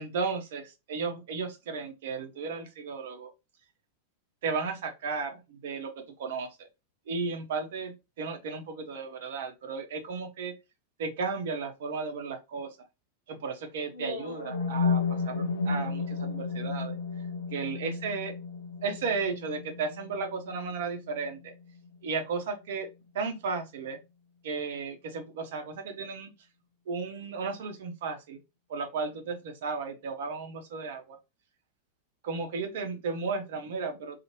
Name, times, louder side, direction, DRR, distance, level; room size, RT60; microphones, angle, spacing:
voice 1, 0.0-3.3 4.4-6.7 7.1-10.5 11.0-12.7 13.3-17.0 17.5-18.3 18.8-21.5 22.0-22.9 23.1-24.0 24.4-26.3 26.9-28.4 28.7-31.2 32.2-34.2, right 4 dB, 55° right, 0.7 m, -34 dB
sound 1, 13.9-22.0, left 4 dB, 65° left, 0.5 m, -33 dB
2.6 x 2.4 x 2.9 m
figure-of-eight pair, 90°, 0 cm